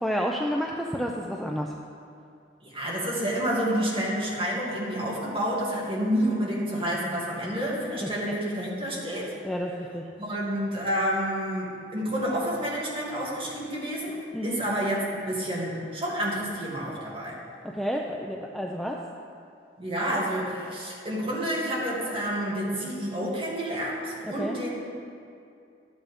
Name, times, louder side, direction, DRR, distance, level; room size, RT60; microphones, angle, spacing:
voice 1, 0.0-1.8 8.0-8.3 9.4-10.1 14.3-14.6 17.6-19.0 24.4-24.6, equal, ahead, 0 dB, 0.4 m, -30 dB
voice 2, 2.6-9.3 10.2-14.2 14.4-17.4 19.8-24.7, equal, 30° right, -6 dB, 2.3 m, -29 dB
11.5 x 9.0 x 3.6 m, 2.5 s
head